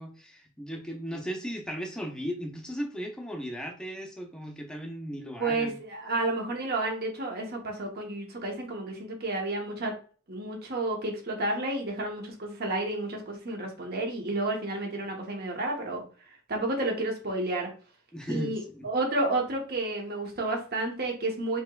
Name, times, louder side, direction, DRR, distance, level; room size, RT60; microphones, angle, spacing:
voice 1, 0.0-5.8 18.1-18.9, equal, 5° left, 2 dB, 0.6 m, -36 dB
voice 2, 5.4-9.9 10.3-16.0 16.5-17.7 18.3-21.6, right 2 dB, 45° right, 1 dB, 1.0 m, -31 dB
5.4 x 3.0 x 2.3 m, 0.41 s
head